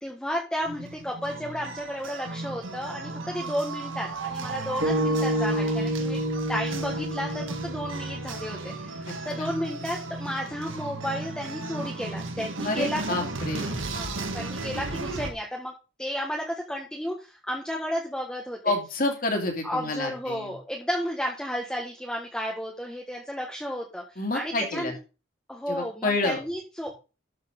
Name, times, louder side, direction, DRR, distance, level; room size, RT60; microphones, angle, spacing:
voice 1, 0.0-6.2 6.5-13.3 13.9-15.7 16.0-18.7 19.6-25.0 25.5-26.9, equal, 5° left, -1 dB, 1.4 m, -33 dB
sound 1, 0.6-15.3, right 3 dB, 80° right, 1.8 m, -35 dB
sound 2, 4.8-9.2, right 1 dB, 60° right, 2.3 m, -29 dB
voice 2, 9.1-9.6 12.6-13.8 18.6-20.5 24.2-24.9 25.7-26.4, left 2 dB, 45° left, 2 dB, 2.9 m, -29 dB
13.0 x 4.8 x 5.3 m, 0.32 s
head